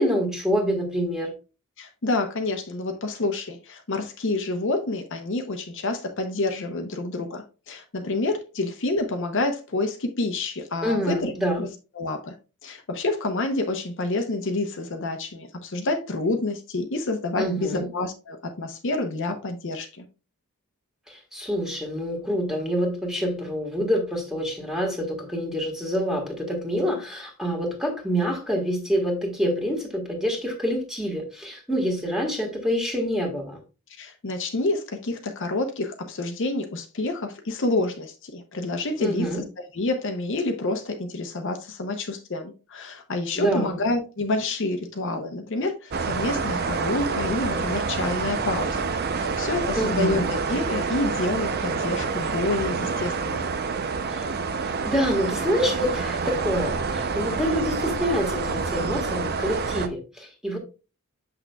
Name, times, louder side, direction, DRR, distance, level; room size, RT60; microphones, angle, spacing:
voice 1, 0.0-1.3 10.8-11.7 17.4-17.9 21.1-33.6 39.0-39.4 43.3-43.8 49.7-50.3 54.1-54.3 54.6-60.6, equal, ahead, 1.6 m, -26 dB
voice 2, 1.8-11.7 12.0-12.3 12.6-20.1 34.0-39.4 39.7-53.5, left 2 dB, 60° left, 0.8 m, -28 dB
sound 1, 45.9-59.9, right 4 dB, 45° right, 0.6 m, -27 dB
6.8 x 6.0 x 2.3 m
head